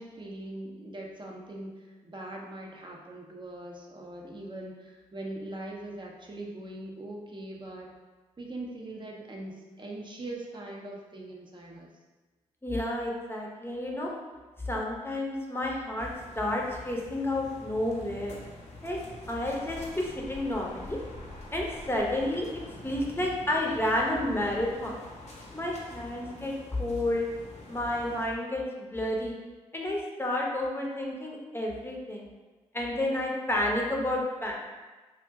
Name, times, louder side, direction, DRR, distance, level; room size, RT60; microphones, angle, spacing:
voice 1, 0.0-7.9 8.4-11.9 26.1-26.4, right 1 dB, 30° right, -1 dB, 0.6 m, -41 dB
voice 2, 12.6-14.1 14.7-16.1 16.4-18.3 18.8-19.0 19.3-21.0 21.5-25.0 25.5-27.3 27.7-29.4 29.7-32.3 32.7-34.5, left 1 dB, 15° left, -2 dB, 0.7 m, -30 dB
sound 1, 16.0-28.3, left 2 dB, 50° left, 0.7 m, -46 dB
2.5 x 2.1 x 3.4 m, 1.3 s
hypercardioid pair, 45°, 15 cm